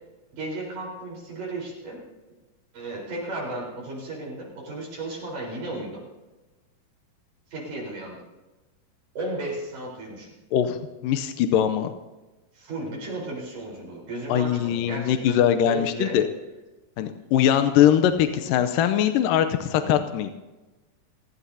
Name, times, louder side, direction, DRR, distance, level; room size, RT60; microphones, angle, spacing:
voice 1, 0.3-2.0 2.7-6.0 7.5-8.2 9.2-10.3 12.5-16.2, right 2 dB, 70° right, -4 dB, 6.0 m, -34 dB
voice 2, 11.0-11.9 14.3-16.2 17.0-20.3, left 10 dB, 90° left, 8 dB, 2.4 m, -21 dB
28.5 x 15.5 x 2.8 m, 1.1 s
omnidirectional pair, 3.9 m